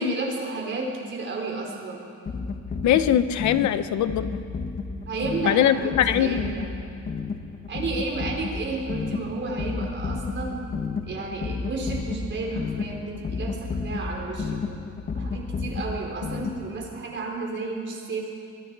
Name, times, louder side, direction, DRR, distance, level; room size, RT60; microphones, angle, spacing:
voice 1, 0.0-2.0 5.1-6.7 7.7-10.6 11.1-14.6 15.1-18.3, right 3 dB, 40° right, 0 dB, 4.2 m, -32 dB
sound 1, 2.3-16.9, left 4 dB, 30° left, 1.2 m, -32 dB
voice 2, 2.8-4.4 5.4-6.5, left 11 dB, 70° left, 12 dB, 0.9 m, -22 dB
26.5 x 23.0 x 4.8 m, 2.5 s
cardioid pair, 160°, 30 cm